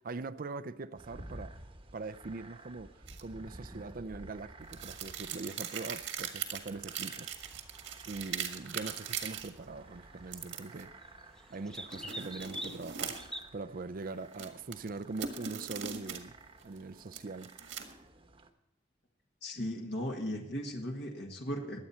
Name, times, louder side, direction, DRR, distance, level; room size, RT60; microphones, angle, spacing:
voice 1, 0.0-1.6 1.9-7.3 8.1-10.9 11.5-13.2 13.5-16.3 16.6-17.5, right 3 dB, 45° right, 0.5 m, -42 dB
sound 1, 1.0-18.5, right 2 dB, 30° right, 1.1 m, -53 dB
sound 2, 3.1-3.2 4.7-9.5 10.3-10.8 11.9-13.4 14.3-16.2 16.6-18.0, right 8 dB, 75° right, 1.7 m, -40 dB
sound 3, 7.3-13.4, equal, 5° left, 0.8 m, -48 dB
voice 2, 19.4-21.8, equal, 60° left, 1.7 m, -37 dB
22.0 x 8.5 x 4.3 m
head